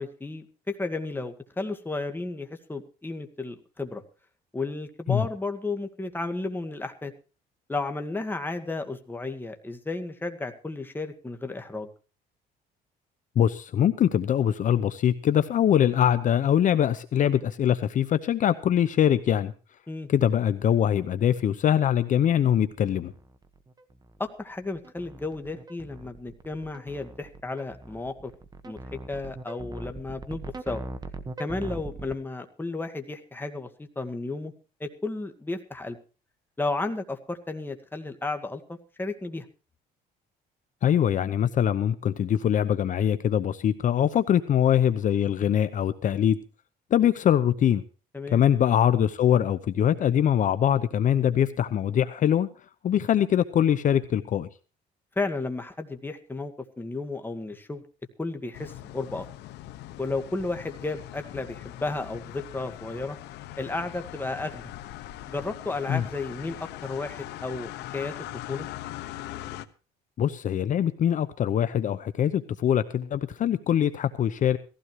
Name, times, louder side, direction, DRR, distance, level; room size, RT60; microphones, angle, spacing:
voice 1, 0.0-4.0 4.5-7.1 7.7-11.9 19.9-20.1 24.2-28.3 28.6-30.8 31.4-34.5 34.8-36.0 36.6-39.5 48.1-48.4 55.2-57.8 58.2-59.3 60.0-63.2 63.6-64.7 65.3-68.1 68.5-68.7, left 3 dB, 10° left, 6 dB, 1.9 m, -33 dB
voice 2, 13.4-19.5 20.1-23.1 40.8-46.4 46.9-47.8 48.3-52.5 52.8-54.5 65.9-66.1 70.2-74.6, left 9 dB, 50° left, 13 dB, 0.8 m, -23 dB
sound 1, 22.6-32.1, right 2 dB, 25° right, 1.4 m, -40 dB
sound 2, 58.5-69.7, left 14 dB, 85° left, 1.1 m, -41 dB
18.0 x 15.5 x 3.1 m, 0.35 s
cardioid pair, 110°, 17 cm